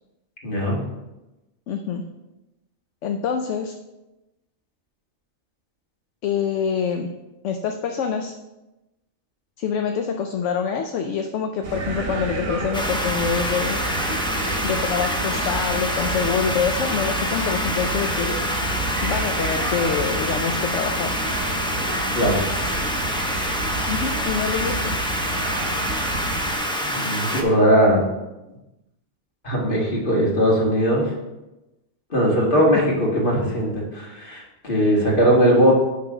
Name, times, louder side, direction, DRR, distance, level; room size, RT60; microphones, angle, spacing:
voice 1, 0.4-0.8 22.1-22.4 26.8-28.0 29.4-31.1 32.1-35.7, equal, 40° left, -3 dB, 2.0 m, -19 dB
voice 2, 1.7-2.0 3.0-3.7 6.2-7.1 7.4-8.3 9.6-13.8 14.6-18.3 19.0-21.2 23.9-25.0, left 6 dB, 70° left, 5 dB, 0.9 m, -25 dB
sound 1, 11.6-26.5, right 2 dB, 75° right, 1.6 m, -30 dB
sound 2, 12.7-27.4, equal, 5° left, 0.4 m, -26 dB
10.0 x 3.8 x 4.9 m, 1.0 s
omnidirectional pair, 1.4 m